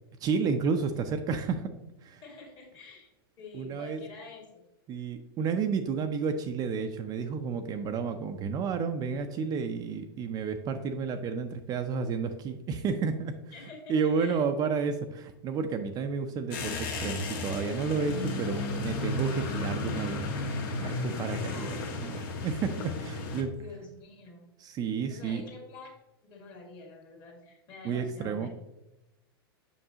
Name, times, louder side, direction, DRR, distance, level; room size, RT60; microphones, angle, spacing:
voice 1, 0.2-1.7 2.0-2.2 3.5-4.0 4.9-13.3 13.9-20.4 20.8-23.5 24.6-25.4 27.8-28.5, right 5 dB, 30° right, 7 dB, 0.5 m, -31 dB
voice 2, 2.2-3.1 3.4-4.6 13.5-14.4 18.3-19.0 21.4-21.7 23.2-24.5 25.1-25.9 26.2-28.5, left 3 dB, 35° left, 1 dB, 2.0 m, -47 dB
sound 1, 16.5-23.4, left 3 dB, 60° left, 1.3 m, -34 dB
6.6 x 5.5 x 2.8 m, 0.94 s
hypercardioid pair, 110°, 13 cm